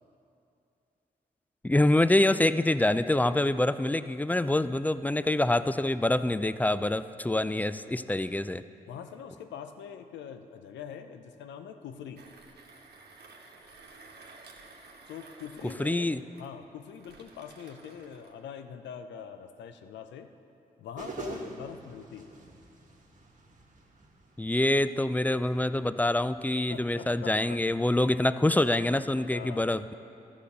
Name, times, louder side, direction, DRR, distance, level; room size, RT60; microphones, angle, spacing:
voice 1, 1.6-8.6 15.8-16.2 24.4-29.9, left 1 dB, 10° left, 14 dB, 0.4 m, -26 dB
voice 2, 5.2-5.5 8.9-12.2 15.1-20.3 20.8-22.3 26.7-27.6 29.3-29.7, left 8 dB, 85° left, 8 dB, 0.6 m, -43 dB
Mechanisms, 12.2-18.4, right 3 dB, 65° right, 1.2 m, -53 dB
sound 1, 21.0-26.5, right 2 dB, 45° right, 1.5 m, -45 dB
13.0 x 5.0 x 6.7 m, 2.6 s
supercardioid pair, 40°, 18 cm